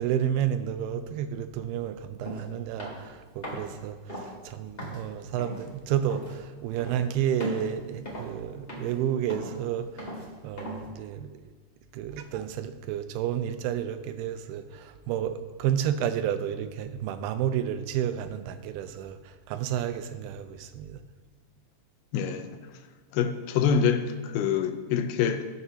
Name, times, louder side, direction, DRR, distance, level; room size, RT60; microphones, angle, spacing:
voice 1, 0.0-10.1 10.4-11.4 11.9-21.0, right 10 dB, 85° right, 2.5 m, -31 dB
sound 1, 2.2-2.4 2.8-3.1 3.4-3.7 4.1-4.3 4.8-5.0 5.4-5.6 6.1-6.3 6.8-7.0 7.4-7.7 8.1-8.4 8.7-9.0 9.3-9.6 10.0-10.2 10.6-10.9, equal, 20° left, 1.5 m, -37 dB
voice 2, 22.1-22.6 23.1-25.5, left 7 dB, 80° left, 2.6 m, -26 dB
19.5 x 7.0 x 2.8 m
omnidirectional pair, 4.5 m